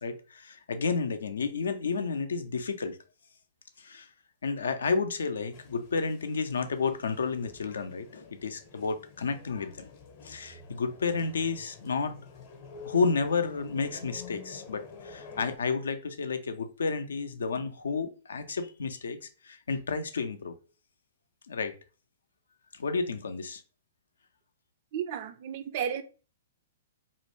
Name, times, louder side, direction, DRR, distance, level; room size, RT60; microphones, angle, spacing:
voice 1, 0.0-3.0 3.8-4.1 4.4-9.9 10.2-12.1 12.8-19.2 19.4-20.6 21.5-21.7 22.7-23.6, left 4 dB, 75° left, 0.4 m, -31 dB
sound 1, 5.5-15.6, left 5 dB, 40° left, 0.6 m, -49 dB
voice 2, 24.9-26.0, right 8 dB, 50° right, 0.3 m, -33 dB
2.4 x 2.1 x 3.0 m
hypercardioid pair, 115°, 0 cm